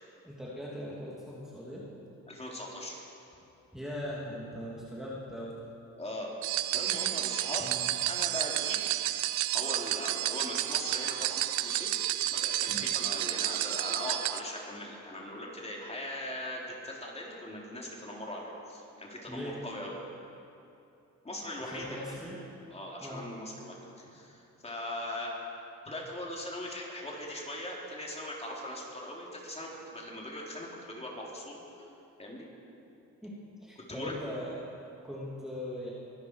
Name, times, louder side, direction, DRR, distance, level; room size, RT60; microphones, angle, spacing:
voice 1, 0.2-1.9 3.7-5.5 7.6-7.9 12.7-12.9 19.3-19.6 21.6-22.4 23.0-23.3 33.2-34.6 35.0-35.9, equal, ahead, -7 dB, 2.8 m, -40 dB
voice 2, 2.3-3.0 6.0-6.3 6.7-7.7 8.0-9.0 9.5-19.9 21.2-22.0 22.7-25.3 25.8-31.9 32.2-32.5 33.9-34.2, left 1 dB, 20° left, -3 dB, 3.8 m, -40 dB
sound 1, 6.4-14.4, right 14 dB, 90° right, 0.6 m, -31 dB
24.0 x 11.5 x 4.9 m, 2.7 s
cardioid pair, 90°, 30 cm